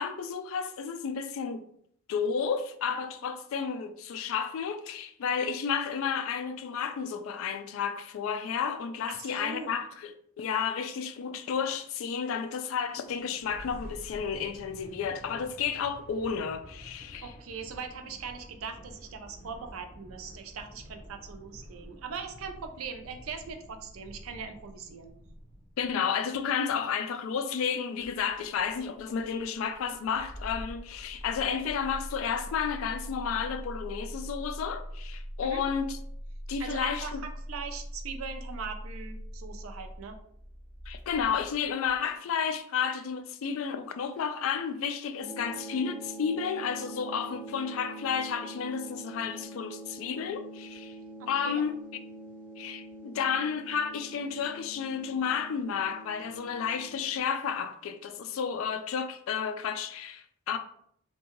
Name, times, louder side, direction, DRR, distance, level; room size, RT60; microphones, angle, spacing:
voice 1, 0.0-1.7 2.1-17.3 25.8-36.0 36.5-37.2 40.9-50.9 51.3-51.8 52.6-60.6, left 6 dB, 70° left, 0.3 m, -32 dB
voice 2, 9.1-9.7 17.2-25.1 35.4-35.6 36.6-37.1 37.5-40.2 51.2-51.6, right 5 dB, 80° right, 0.4 m, -40 dB
sound 1, 12.8-25.9, equal, 50° left, 1.0 m, -49 dB
Engine starting, 28.0-42.1, equal, 30° left, 1.2 m, -42 dB
sound 2, 45.2-57.2, right 2 dB, 10° left, 0.7 m, -45 dB
2.7 x 2.2 x 2.9 m
head